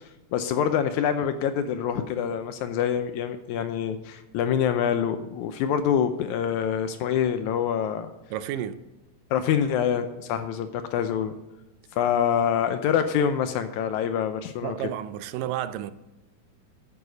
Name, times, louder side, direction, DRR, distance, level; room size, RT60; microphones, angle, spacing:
voice 1, 0.0-8.1 9.3-11.3 12.0-14.8, left 8 dB, 80° left, 1.8 m, -26 dB
voice 2, 8.3-8.8 14.6-15.9, right 11 dB, 85° right, 2.2 m, -31 dB
11.0 x 9.7 x 4.0 m
omnidirectional pair, 3.8 m